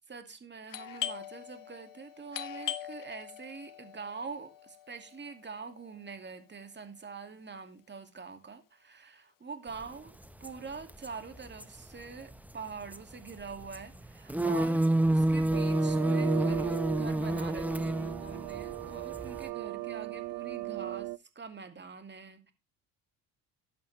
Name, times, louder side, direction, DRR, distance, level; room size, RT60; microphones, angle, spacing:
voice 1, 0.1-10.2 10.4-14.8 15.1-22.5, right 5 dB, 25° right, 2.5 m, -44 dB
Doorbell, 0.7-6.2, left 11 dB, 55° left, 1.2 m, -42 dB
sound 1, 10.4-10.5 10.9-11.1 11.5-11.6 12.9-13.4 13.7-13.8 14.0-19.5, right 1 dB, 5° right, 1.2 m, -28 dB
sound 2, 15.5-21.2, right 19 dB, 60° right, 0.7 m, -38 dB
12.5 x 8.5 x 3.4 m
supercardioid pair, 70°, 40 cm